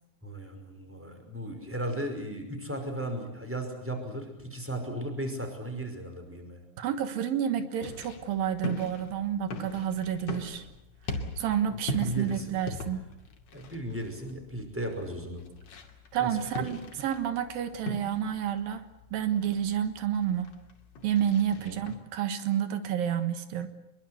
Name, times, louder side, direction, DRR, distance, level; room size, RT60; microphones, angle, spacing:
voice 1, 0.2-6.6 11.6-12.6 13.5-15.4 16.2-16.3 16.6-16.7 21.6-21.8, right 1 dB, 5° right, 5 dB, 5.3 m, -36 dB
voice 2, 6.8-10.7 11.4-13.1 16.1-20.5 21.0-23.7, right 9 dB, 85° right, 10 dB, 3.3 m, -30 dB
sound 1, 7.8-22.0, left 2 dB, 55° left, 3.6 m, -40 dB
25.0 x 23.0 x 8.1 m, 0.89 s
omnidirectional pair, 4.0 m